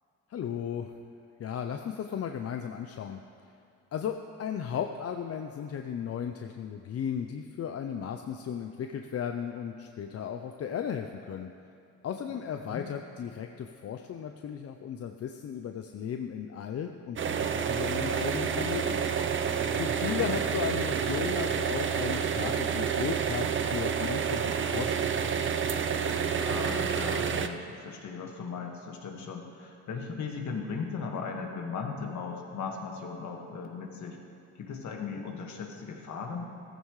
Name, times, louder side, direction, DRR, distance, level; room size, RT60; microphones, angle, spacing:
voice 1, 0.3-0.9 1.4-3.2 3.9-11.5 12.0-19.0 19.7-25.3, left 8 dB, 55° left, 5 dB, 0.6 m, -35 dB
voice 2, 12.6-12.9 19.9-20.3 26.2-34.2 34.6-36.4, left 5 dB, 70° left, 1 dB, 1.8 m, -37 dB
sound 1, 17.2-27.5, right 7 dB, 40° right, 0.7 m, -29 dB
15.0 x 14.5 x 3.3 m, 2.5 s
cardioid pair, 90°, 30 cm